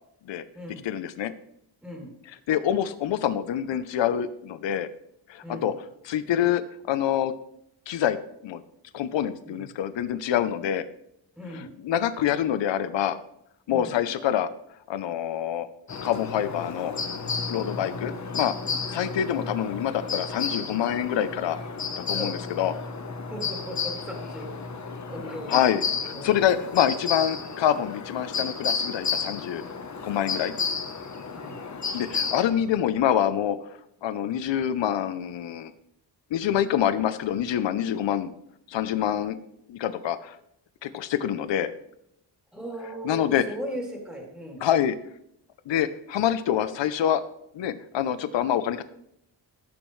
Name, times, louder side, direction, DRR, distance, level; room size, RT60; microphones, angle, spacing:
voice 1, 0.7-1.3 2.3-4.9 5.3-5.7 6.0-6.6 6.9-7.3 7.9-8.2 8.4-8.6 8.9-10.9 11.5-13.2 13.7-14.5 14.9-15.7 16.0-16.9 17.5-18.5 18.9-21.6 22.1-22.7 25.5-29.6 30.0-30.5 31.9-33.6 34.0-35.7 36.3-38.3 38.7-39.4 39.7-40.4 40.8-41.7 43.0-43.4 44.6-45.0 45.7-47.2 47.5-48.8, left 10 dB, 80° left, 13 dB, 0.7 m, -26 dB
voice 2, 1.8-2.1 5.4-5.7 9.4-9.7 11.4-11.7 13.7-14.0 17.7-17.9 22.1-22.3 23.3-24.5 25.1-25.6 26.0-26.3 31.3-31.6 42.5-44.6, equal, ahead, -1 dB, 3.0 m, -37 dB
sound 1, 15.9-32.4, left 5 dB, 40° left, 1.1 m, -32 dB
16.5 x 7.0 x 3.2 m, 0.76 s
wide cardioid pair, 110°, 44 cm